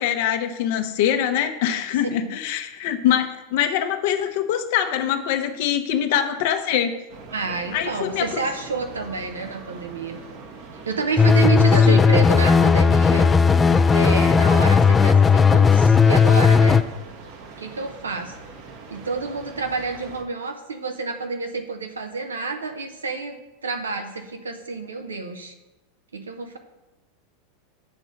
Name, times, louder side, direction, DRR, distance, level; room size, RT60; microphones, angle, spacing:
voice 1, 0.0-7.0 7.7-8.4 11.8-12.0, left 10 dB, 60° left, 8 dB, 0.8 m, -23 dB
sound 1, 7.1-20.2, right 4 dB, 60° right, 1.1 m, -41 dB
voice 2, 7.3-10.2 10.7-13.3 13.9-16.8 17.6-18.4 18.9-23.4 23.6-25.5 26.1-26.6, right 4 dB, 85° right, 5 dB, 0.9 m, -29 dB
sound 2, 11.2-16.8, left 5 dB, 20° left, 0.4 m, -15 dB
7.4 x 3.8 x 6.5 m, 1.0 s
hypercardioid pair, 90°, 0 cm